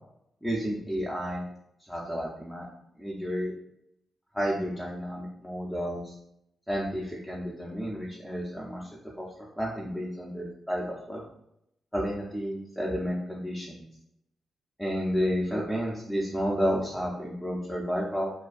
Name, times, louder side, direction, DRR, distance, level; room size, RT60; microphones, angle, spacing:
voice 1, 0.4-1.5 1.9-2.7 3.0-3.5 4.3-6.1 6.7-8.9 9.2-9.3 9.6-11.2 11.9-13.8 14.8-18.3, equal, 5° left, -5 dB, 0.6 m, -31 dB
2.5 x 2.2 x 2.4 m, 0.76 s
cardioid pair, 75°, 0 cm